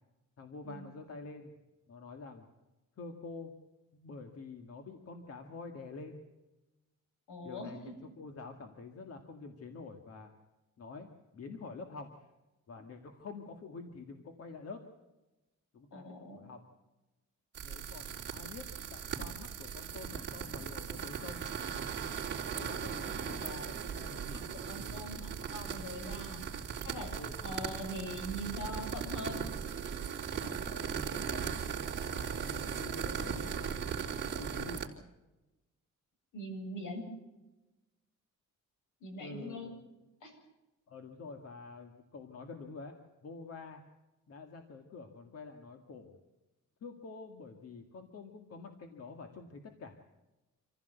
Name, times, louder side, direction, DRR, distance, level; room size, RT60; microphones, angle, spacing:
voice 1, 0.4-1.5 1.9-2.5 3.0-3.5 3.9-6.2 7.4-10.3 10.8-12.3 12.7-14.8 15.7-16.6 17.6-21.4 22.5-24.4 26.1-26.3 27.1-27.4 30.6-31.6 31.9-33.8 34.3-34.8 39.2-39.7 40.9-43.8 44.3-46.2 46.8-50.0, left 4 dB, 50° left, 5 dB, 2.0 m, -47 dB
voice 2, 7.3-7.9 15.9-16.4 24.3-26.5 26.8-27.1 27.4-29.4 36.3-37.0 39.0-39.7 40.2-40.4, equal, 75° left, 4 dB, 7.7 m, -42 dB
sound 1, 17.5-34.9, right 7 dB, 35° right, 3.4 m, -38 dB
27.0 x 15.5 x 8.2 m, 1.0 s
wide cardioid pair, 165°, 31 cm